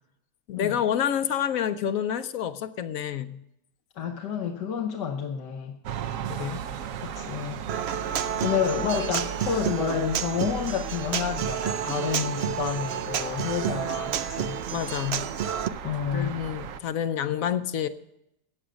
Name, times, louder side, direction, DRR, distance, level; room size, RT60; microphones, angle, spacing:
voice 1, 0.5-3.4 6.3-6.6 14.7-15.2 16.1-17.9, left 9 dB, 65° left, 12 dB, 0.9 m, -28 dB
voice 2, 3.9-5.8 7.0-7.6 8.4-14.6 15.8-16.4, left 7 dB, 85° left, 3 dB, 1.6 m, -29 dB
sound 1, 5.8-16.8, right 7 dB, 60° right, 0.9 m, -36 dB
Human voice / Acoustic guitar, 7.7-15.7, right 9 dB, 80° right, 0.5 m, -30 dB
15.0 x 9.1 x 5.1 m, 0.82 s
omnidirectional pair, 1.8 m